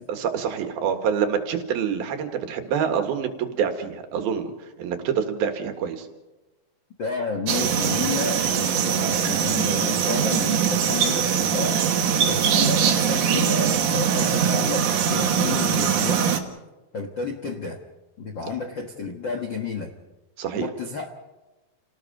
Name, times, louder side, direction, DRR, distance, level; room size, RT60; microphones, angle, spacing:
voice 1, 0.1-4.5 4.8-6.1 20.4-20.7, right 7 dB, 85° right, 6 dB, 3.7 m, -26 dB
voice 2, 7.0-11.8 12.1-16.4 16.9-17.8 18.2-20.0 20.5-21.1, left 4 dB, 50° left, 3 dB, 1.4 m, -31 dB
sound 1, 7.5-16.4, right 8 dB, 60° right, 2.9 m, -22 dB
29.5 x 19.0 x 5.2 m, 1.1 s
omnidirectional pair, 4.2 m